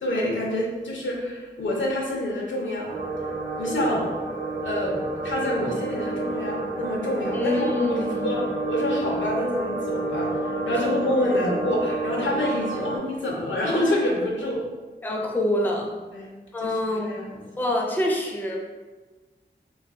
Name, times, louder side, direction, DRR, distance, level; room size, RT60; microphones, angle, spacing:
voice 1, 0.0-2.9 3.2-3.3 3.6-4.1 4.6-8.0 8.2-14.6 16.1-16.3 16.6-17.7, left 1 dB, 85° left, -2 dB, 0.7 m, -27 dB
sound 1, 2.9-13.0, right 2 dB, 65° right, 0.8 m, -29 dB
voice 2, 7.3-8.3 15.0-15.9 16.5-17.1 17.6-18.6, left 1 dB, 10° left, -1 dB, 0.4 m, -25 dB
2.5 x 2.4 x 3.5 m, 1.3 s
wide cardioid pair, 90°, 19 cm